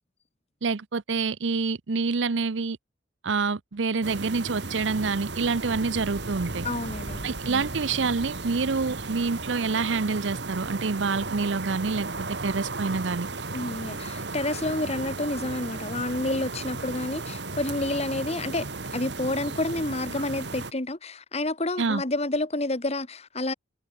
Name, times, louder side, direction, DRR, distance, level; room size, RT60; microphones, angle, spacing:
voice 1, 0.6-2.8 3.2-6.7 7.2-12.1 12.4-13.3 21.8-22.0, right 4 dB, 80° right, 0.7 m, -27 dB
sound 1, 4.0-20.7, right 3 dB, 65° right, 2.2 m, -35 dB
voice 2, 6.6-7.4 13.5-23.5, left 2 dB, 35° left, 1.8 m, -29 dB
head